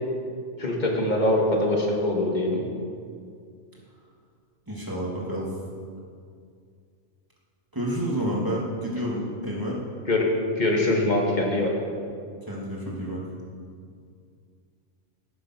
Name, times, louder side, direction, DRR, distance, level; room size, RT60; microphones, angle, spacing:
voice 1, 0.6-2.6 10.1-10.3 10.6-11.7, left 1 dB, 35° left, -1 dB, 2.1 m, -23 dB
voice 2, 4.7-5.5 7.7-9.8 12.5-13.2, equal, 15° right, -4 dB, 2.5 m, -29 dB
18.0 x 7.5 x 6.0 m, 2.3 s
omnidirectional pair, 1.3 m